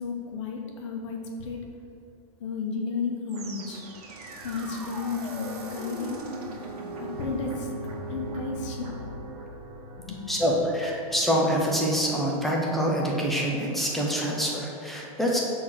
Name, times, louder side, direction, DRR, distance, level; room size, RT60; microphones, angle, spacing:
voice 1, 0.0-1.6 2.4-3.8 4.4-6.2 7.0-8.9 10.0-10.6, left 4 dB, 55° left, 1 dB, 1.1 m, -33 dB
sound 1, 3.3-12.4, right 2 dB, 90° right, 1.4 m, -39 dB
voice 2, 10.3-15.4, equal, ahead, -3 dB, 0.5 m, -26 dB
6.4 x 3.8 x 6.0 m, 2.6 s
supercardioid pair, 180°, 19 cm